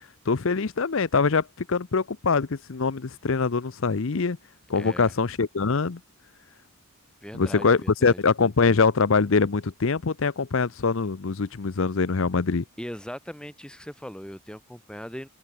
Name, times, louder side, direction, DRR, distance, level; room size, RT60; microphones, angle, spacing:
voice 1, 0.3-4.4 4.7-6.0 7.3-12.6, left 4 dB, 65° left, 0.7 m, -23 dB
voice 2, 4.7-5.1 7.2-8.2 12.8-15.3, equal, 5° left, 3.3 m, -39 dB
open air
head